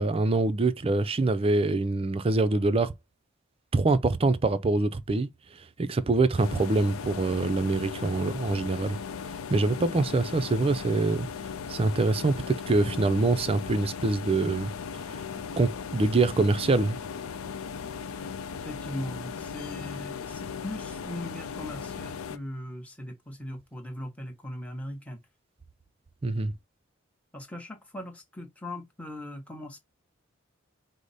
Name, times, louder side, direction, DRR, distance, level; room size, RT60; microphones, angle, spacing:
voice 1, 0.0-2.9 3.7-5.3 5.8-9.0 9.5-11.3 11.7-14.7 15.6-17.0 26.2-26.5, right 3 dB, 30° right, 0.4 m, -25 dB
sound 1, 6.4-22.4, left 6 dB, 85° left, 0.5 m, -37 dB
voice 2, 18.5-25.2 27.3-29.8, left 1 dB, 5° left, 1.0 m, -39 dB
4.9 x 2.1 x 4.0 m
head